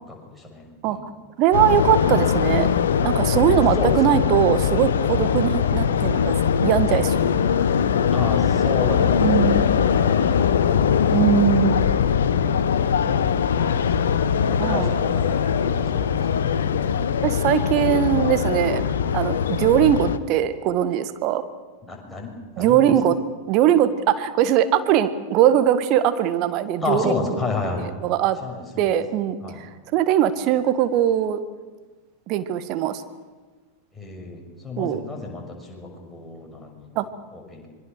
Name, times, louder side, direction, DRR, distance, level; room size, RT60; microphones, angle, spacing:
voice 1, 0.1-1.1 3.7-4.4 8.1-11.3 13.6-16.5 21.8-23.0 26.8-27.8 28.4-29.0 29.4-29.6 33.9-37.7, left 3 dB, 5° left, 0 dB, 6.4 m, -32 dB
voice 2, 1.4-2.7 3.0-6.4 6.6-7.2 7.6-7.7 9.2-9.7 11.1-12.0 13.0-13.2 14.6-14.9 17.2-18.8 19.1-21.4 22.6-23.2 23.5-27.0 28.0-28.4 28.8-29.4 29.9-31.4 32.3-33.0 34.8-35.0 36.9-37.1, right 11 dB, 40° right, 11 dB, 1.7 m, -20 dB
sound 1, 1.5-20.2, left 7 dB, 65° left, 1.2 m, -21 dB
26.0 x 23.0 x 6.7 m, 1.3 s
figure-of-eight pair, 90°, 0 cm